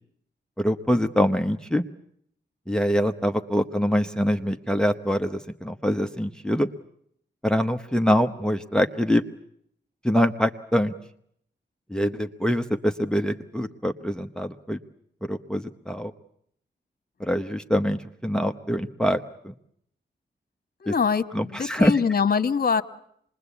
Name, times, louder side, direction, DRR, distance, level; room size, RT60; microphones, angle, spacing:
voice 1, 0.6-1.8 2.7-6.7 7.4-9.2 10.0-10.9 11.9-14.8 15.2-16.1 17.2-19.5 20.9-21.0 21.3-21.9, equal, 5° left, 7 dB, 0.9 m, -24 dB
voice 2, 20.8-22.8, left 6 dB, 50° left, 11 dB, 1.3 m, -23 dB
26.5 x 21.0 x 8.3 m, 0.70 s
wide cardioid pair, 85°, 19 cm